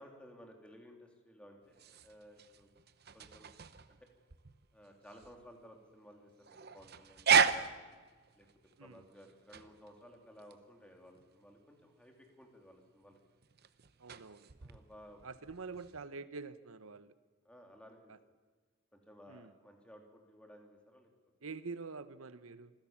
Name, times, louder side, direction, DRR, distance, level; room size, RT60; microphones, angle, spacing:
voice 1, 0.0-2.7 3.1-3.5 3.9-4.0 4.7-7.9 8.3-8.5 8.8-13.2 14.6-15.3 17.4-18.1 18.9-21.1, equal, 5° left, 2 dB, 3.0 m, -57 dB
sound 1, 1.6-16.0, right 6 dB, 50° right, 0.9 m, -36 dB
voice 2, 14.0-14.5 15.2-17.1 18.1-18.2 19.3-19.5 21.4-22.7, right 4 dB, 85° right, 13 dB, 0.9 m, -46 dB
26.5 x 16.0 x 7.3 m, 1.4 s
head